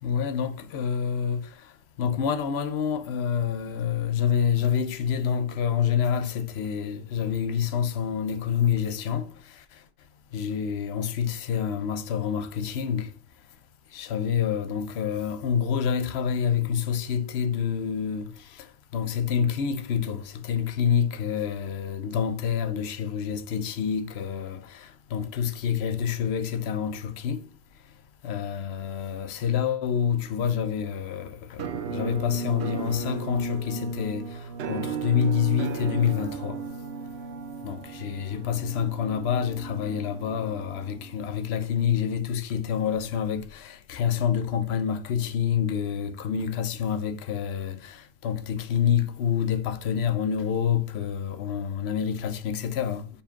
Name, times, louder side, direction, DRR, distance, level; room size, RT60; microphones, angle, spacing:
voice 1, 0.0-9.6 10.3-13.1 13.9-27.5 28.2-36.7 37.6-53.1, left 8 dB, 55° left, 0.8 m, -27 dB
Musical instrument, 31.6-41.4, right 5 dB, 60° right, 0.8 m, -35 dB
5.3 x 4.7 x 5.7 m
omnidirectional pair, 1.5 m